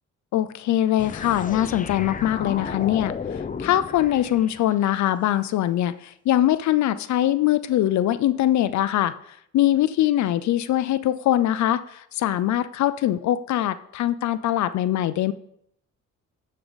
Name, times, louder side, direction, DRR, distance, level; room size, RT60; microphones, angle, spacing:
voice 1, 0.3-15.3, left 13 dB, 70° left, 14 dB, 0.5 m, -22 dB
sound 1, 1.0-4.9, left 5 dB, 25° left, 0.6 m, -33 dB
9.7 x 6.6 x 4.0 m, 0.72 s
cardioid pair, 90°, 30 cm